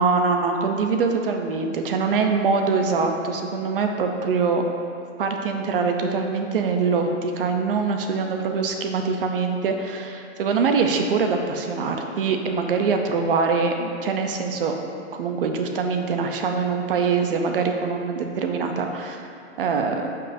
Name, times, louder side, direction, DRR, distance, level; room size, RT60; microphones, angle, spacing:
voice 1, 0.0-4.6 5.2-14.7 15.1-19.2 19.6-20.1, right 5 dB, 50° right, 4 dB, 0.7 m, -23 dB
10.0 x 5.5 x 2.7 m, 2.4 s
hypercardioid pair, 175°, 36 cm